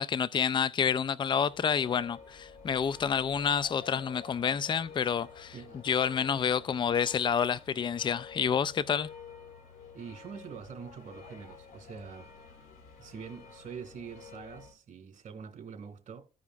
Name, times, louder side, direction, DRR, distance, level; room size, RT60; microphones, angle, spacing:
voice 1, 0.0-5.5 5.8-9.1, left 7 dB, 35° left, 0.4 m, -29 dB
sound 1, 1.5-14.7, left 5 dB, 70° left, 2.8 m, -50 dB
voice 2, 5.5-5.8 9.9-12.3 13.0-16.2, right 6 dB, 55° right, 2.0 m, -45 dB
14.5 x 5.0 x 2.4 m
cardioid pair, 75°, 15 cm